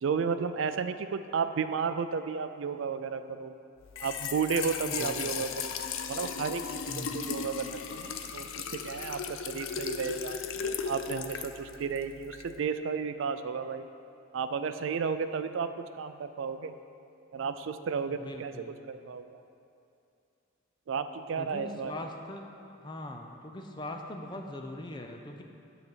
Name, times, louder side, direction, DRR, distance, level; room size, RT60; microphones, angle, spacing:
voice 1, 0.0-3.5 4.0-5.7 6.1-10.4 10.9-13.9 14.3-16.8 17.3-18.5 18.9-19.4 20.9-21.9, right 6 dB, 70° right, 10 dB, 0.4 m, -33 dB
Trickle dribble / Fill (with liquid), 3.8-12.6, left 6 dB, 75° left, 0.5 m, -37 dB
voice 2, 4.8-5.3 6.9-7.3 18.1-18.8 21.4-25.4, left 1 dB, 20° left, 3 dB, 0.5 m, -41 dB
9.5 x 4.0 x 7.2 m, 2.6 s
head